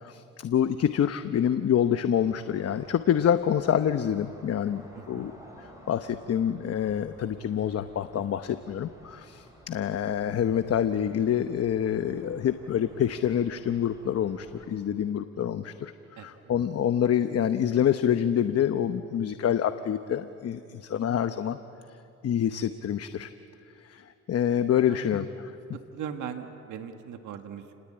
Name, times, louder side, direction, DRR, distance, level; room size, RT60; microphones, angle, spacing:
voice 1, 0.0-4.8 5.1-5.3 5.9-21.6 22.2-23.3 23.8-25.5, left 9 dB, 55° left, 10 dB, 1.0 m, -26 dB
sound 1, 2.1-14.7, equal, 10° right, 7.7 m, -53 dB
voice 2, 4.9-5.3 16.2-16.3 24.9-25.1 25.9-27.8, right 8 dB, 80° right, 6 dB, 1.7 m, -39 dB
30.0 x 20.5 x 8.9 m, 2.7 s
cardioid pair, 90°, 30 cm